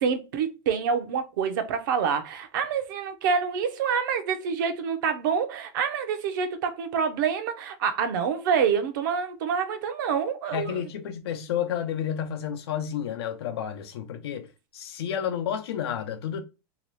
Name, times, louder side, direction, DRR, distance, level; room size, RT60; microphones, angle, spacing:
voice 1, 0.0-10.8, right 6 dB, 55° right, 0.6 m, -27 dB
voice 2, 10.5-14.5 14.7-16.4, left 9 dB, 80° left, 0.6 m, -31 dB
2.8 x 2.3 x 3.1 m
supercardioid pair, 175°, 13 cm